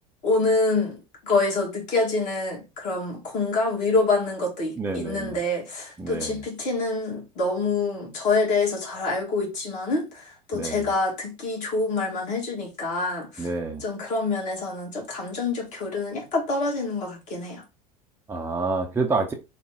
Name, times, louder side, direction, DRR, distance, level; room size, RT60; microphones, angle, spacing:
voice 1, 0.2-13.5 13.8-17.6, left 3 dB, 40° left, 1.6 m, -26 dB
voice 2, 4.8-5.4 6.0-6.4 10.5-10.9 13.4-13.8 18.3-19.3, right 3 dB, 10° right, 0.6 m, -28 dB
3.3 x 2.2 x 3.3 m
figure-of-eight pair, 80°, 20 cm